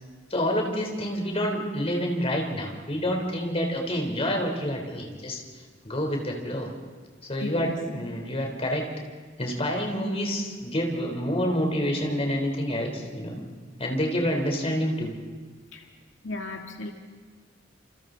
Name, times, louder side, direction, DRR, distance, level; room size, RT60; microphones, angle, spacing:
voice 1, 0.3-5.4 5.8-6.7 7.3-8.8 9.4-13.4 13.8-15.2, equal, 35° left, 1 dB, 4.0 m, -28 dB
voice 2, 7.4-7.8 15.7-15.8 16.2-16.9, left 2 dB, 85° left, 2 dB, 2.0 m, -35 dB
28.5 x 28.0 x 4.1 m, 1.5 s
head